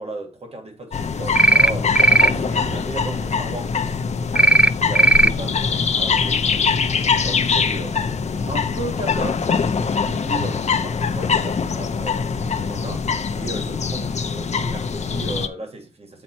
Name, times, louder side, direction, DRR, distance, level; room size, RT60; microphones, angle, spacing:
voice 1, 0.0-5.6 5.9-8.2 8.5-16.2, right 2 dB, 65° right, 1.9 m, -35 dB
sound 1, 0.9-15.5, left 5 dB, 90° left, 0.6 m, -23 dB
sound 2, 1.3-1.7 1.9-2.3 4.3-4.7 4.9-5.3, right 2 dB, 10° right, 0.4 m, -14 dB
sound 3, 1.5-3.8 5.0-7.3 8.3-10.6 11.2-13.6, right 1 dB, 40° right, 1.4 m, -41 dB
7.5 x 4.3 x 4.4 m
wide cardioid pair, 70°, 11 cm